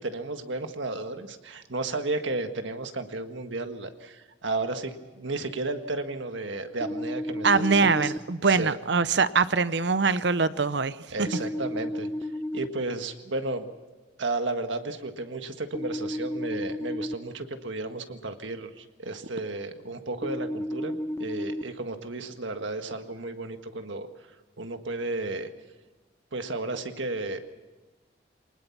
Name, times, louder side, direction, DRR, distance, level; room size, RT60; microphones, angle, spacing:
voice 1, 0.0-8.1 8.4-8.7 11.1-12.1 12.5-13.7 14.2-24.1 24.6-25.5 26.3-27.4, right 2 dB, 85° right, 7 dB, 1.7 m, -33 dB
sound 1, 6.8-8.2 11.3-12.7 15.7-17.1 20.2-21.6, left 1 dB, 15° left, 0.7 m, -32 dB
voice 2, 7.4-11.0, right 4 dB, 65° right, 15 dB, 0.7 m, -23 dB
23.5 x 20.0 x 5.9 m, 1.2 s
head